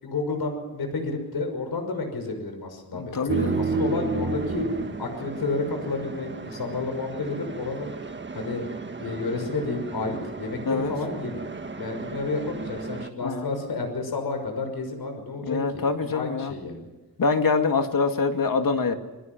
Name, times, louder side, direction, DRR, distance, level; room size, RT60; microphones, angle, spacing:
voice 1, 0.0-4.6 5.0-7.9 8.3-8.6 9.0-16.9, left 3 dB, 85° left, 5 dB, 6.0 m, -31 dB
voice 2, 3.0-3.6 10.7-10.9 13.2-13.5 15.5-16.5 17.2-19.0, left 4 dB, 65° left, 6 dB, 2.6 m, -24 dB
sound 1, 3.3-13.1, right 3 dB, 30° right, 1.6 m, -32 dB
28.0 x 22.5 x 6.2 m, 1.1 s
wide cardioid pair, 110°, 37 cm